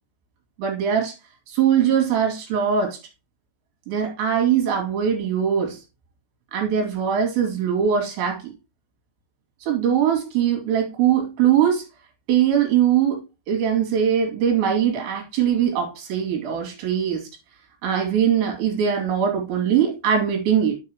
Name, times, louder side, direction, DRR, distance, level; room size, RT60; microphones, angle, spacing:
voice 1, 0.6-1.1 1.5-3.0 3.9-5.8 6.5-8.5 9.6-11.9 12.3-17.3 17.8-20.8, right 8 dB, 70° right, 4.8 m, -21 dB
10.5 x 6.3 x 3.0 m
omnidirectional pair, 5.5 m